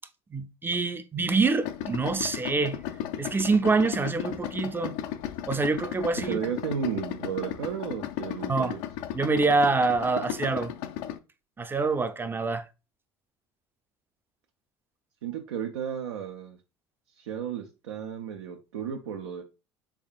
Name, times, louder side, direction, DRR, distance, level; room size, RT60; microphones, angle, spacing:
voice 1, 0.3-2.8 3.2-4.9 5.5-6.4 8.5-8.7 9.1-10.7 11.6-12.6, right 3 dB, 15° right, 0.4 m, -25 dB
Idling, 1.6-11.2, left 10 dB, 70° left, 0.4 m, -35 dB
voice 2, 6.3-8.8 15.2-16.6 17.2-19.4, right 8 dB, 90° right, 0.4 m, -33 dB
3.5 x 3.5 x 2.3 m
hypercardioid pair, 75°, 14 cm